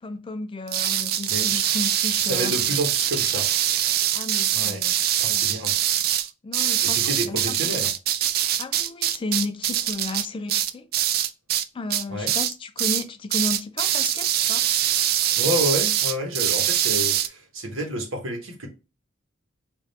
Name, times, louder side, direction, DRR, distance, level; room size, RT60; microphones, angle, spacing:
voice 1, 0.0-2.8 4.1-4.9 5.3-5.5 6.4-7.7 8.6-10.9 11.7-14.7, left 3 dB, 25° left, 0.4 m, -33 dB
sound 1, 0.7-11.6 11.9-12.5 12.8-13.0 13.3-17.3, right 11 dB, 50° right, 0.3 m, -23 dB
voice 2, 1.3-1.8 2.2-3.5 4.5-4.8 5.2-5.7 6.8-7.9 12.1-12.3 15.3-18.7, equal, 90° right, 1.1 m, -29 dB
3.5 x 2.5 x 4.0 m
head